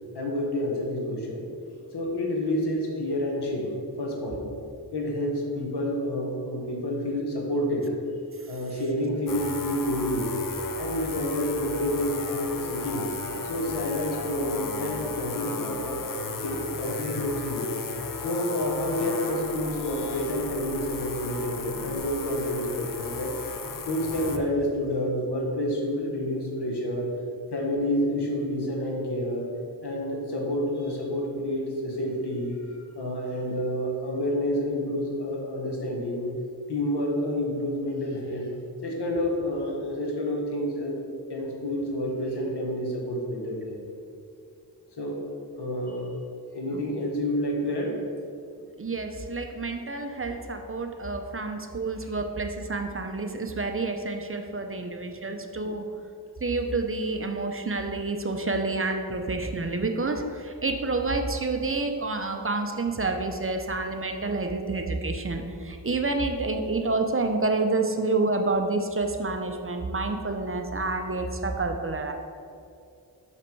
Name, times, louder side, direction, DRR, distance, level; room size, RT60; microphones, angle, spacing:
voice 1, 0.1-1.5 1.9-4.5 4.9-7.9 8.5-10.3 10.8-13.1 13.4-16.1 16.4-17.8 18.2-23.3 23.8-27.1 27.5-29.5 29.8-32.6 32.9-36.3 36.7-38.5 38.8-41.0 41.3-43.8 44.9-45.3 45.6-46.1 46.5-48.0 49.7-49.8 52.0-52.1, left 1 dB, 80° left, -1 dB, 1.5 m, -29 dB
sound 1, 9.3-24.4, left 4 dB, 55° left, 0.6 m, -35 dB
voice 2, 48.8-55.9 56.4-72.1, right 3 dB, 35° right, 5 dB, 0.7 m, -28 dB
6.2 x 5.7 x 4.6 m, 2.5 s
wide cardioid pair, 65°, 39 cm